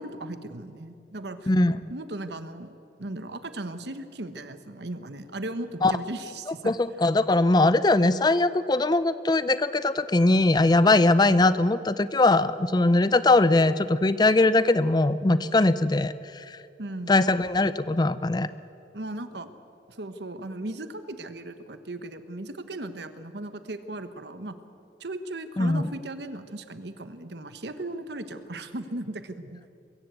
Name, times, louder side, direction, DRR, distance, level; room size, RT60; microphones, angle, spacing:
voice 1, 0.0-1.5 1.9-2.7 3.0-6.7 16.8-17.1 18.9-19.5 20.0-24.5 25.0-29.6, right 1 dB, 65° right, 10 dB, 1.2 m, -37 dB
voice 2, 1.5-1.8 5.8-5.9 6.7-16.6 17.1-18.5 25.6-25.9, left 2 dB, 20° left, 15 dB, 0.5 m, -21 dB
22.0 x 16.0 x 8.2 m, 2.7 s
head